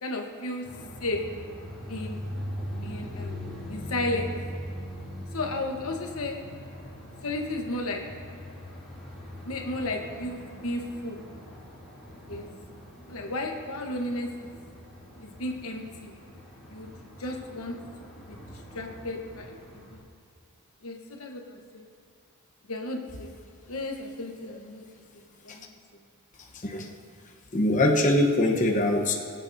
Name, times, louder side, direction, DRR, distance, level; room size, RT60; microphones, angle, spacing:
voice 1, 0.0-0.7 1.0-1.4 1.9-2.2 2.8-3.4 3.7-4.4 5.3-6.5 7.2-8.2 9.4-11.2 12.3-12.5 13.1-14.5 15.2-16.1 16.7-16.9 17.2-17.9 18.3-18.4 18.7-20.0 20.8-21.8 22.7-23.3 23.7-24.9 25.4-25.7, left 2 dB, 85° left, 2 dB, 1.2 m, -33 dB
sound 1, 0.6-20.0, equal, ahead, 3.2 m, -41 dB
voice 2, 27.5-29.1, left 1 dB, 35° left, 0 dB, 1.0 m, -22 dB
24.0 x 8.1 x 2.7 m, 2.3 s
head